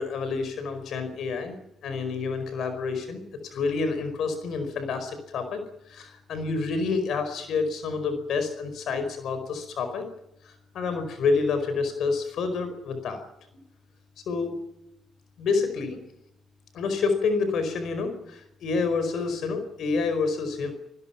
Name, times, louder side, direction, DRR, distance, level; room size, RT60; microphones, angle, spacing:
voice 1, 0.0-1.5 1.8-5.6 5.9-10.0 10.5-13.2 14.3-14.5 15.4-16.0 16.7-20.7, left 4 dB, 70° left, 9 dB, 4.8 m, -28 dB
29.0 x 20.5 x 5.9 m, 0.84 s
cardioid pair, 90°, 0 cm